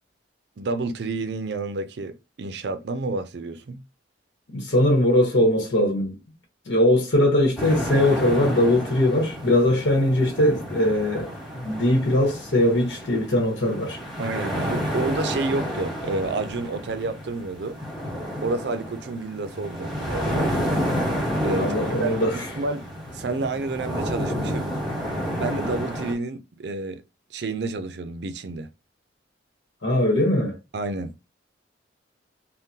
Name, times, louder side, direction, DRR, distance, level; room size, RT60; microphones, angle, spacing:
voice 1, 0.6-3.8 14.2-17.8 18.4-20.5 21.4-22.2 22.6-22.9 23.1-24.7 25.4-27.0 27.3-28.7 30.7-31.2, right 3 dB, 65° right, 0.5 m, -30 dB
voice 2, 4.5-6.2 6.7-14.0 21.5-22.5 29.8-30.6, left 1 dB, 80° left, 1.0 m, -21 dB
sound 1, 7.6-26.1, equal, ahead, 1.2 m, -30 dB
3.6 x 2.1 x 2.7 m
head